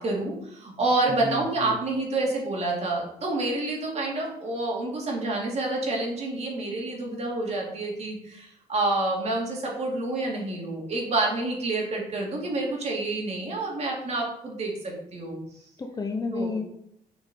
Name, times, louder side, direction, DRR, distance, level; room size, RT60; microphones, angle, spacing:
voice 1, 0.0-15.4 16.3-16.5, right 2 dB, 40° right, -1 dB, 2.4 m, -28 dB
voice 2, 1.1-1.8 15.8-16.6, left 3 dB, 20° left, 4 dB, 0.8 m, -31 dB
7.0 x 5.1 x 4.2 m, 0.74 s
cardioid pair, 110°, 17 cm